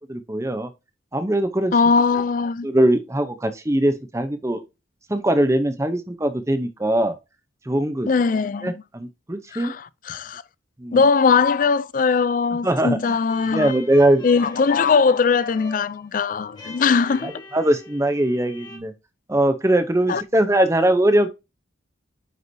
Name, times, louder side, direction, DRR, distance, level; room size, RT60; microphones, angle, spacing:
voice 1, 0.1-0.7 1.1-1.7 2.6-4.6 5.1-7.2 7.7-8.1 8.6-9.7 10.8-11.0 12.6-13.2 13.5-14.2 17.2-18.9 19.3-21.3, right 1 dB, 15° right, 0.7 m, -21 dB
voice 2, 1.7-2.7 8.1-8.7 9.5-10.4 10.9-13.7 14.2-17.3 20.1-20.2, left 5 dB, 40° left, 0.3 m, -20 dB
sound 1, 13.3-18.8, left 2 dB, 20° left, 1.6 m, -43 dB
9.6 x 4.8 x 2.7 m
head